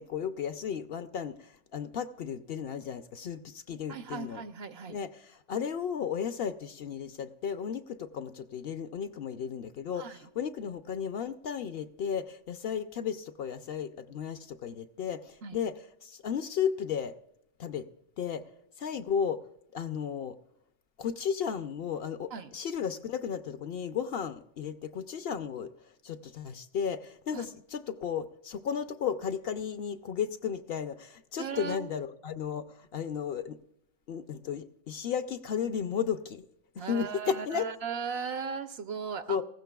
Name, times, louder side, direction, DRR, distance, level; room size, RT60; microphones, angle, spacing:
voice 1, 0.0-4.4 4.9-15.7 16.0-17.1 17.6-17.9 18.2-18.5 18.8-19.4 19.7-20.4 21.0-25.7 26.0-33.6 34.1-36.4 36.8-37.6 39.3-39.4, left 7 dB, 65° left, 10 dB, 0.7 m, -34 dB
voice 2, 3.9-5.0 10.0-10.2 15.4-15.6 22.3-22.5 27.3-27.5 31.4-31.9 36.8-39.4, right 6 dB, 65° right, 10 dB, 0.9 m, -37 dB
18.5 x 15.0 x 2.3 m, 0.81 s
omnidirectional pair, 1.2 m